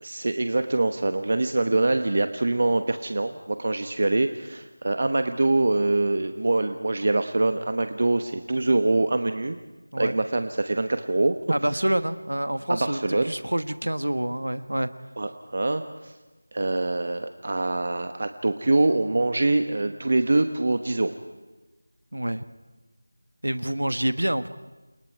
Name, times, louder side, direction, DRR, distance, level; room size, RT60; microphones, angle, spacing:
voice 1, 0.0-9.6 10.0-11.4 12.7-13.3 15.2-16.1 16.5-21.1, right 2 dB, 45° right, 8 dB, 1.2 m, -24 dB
voice 2, 11.5-13.0 13.2-14.9 22.1-22.4 23.4-24.5, right 1 dB, 90° right, 11 dB, 1.4 m, -27 dB
29.0 x 28.5 x 4.7 m, 1.2 s
figure-of-eight pair, 170°, 0 cm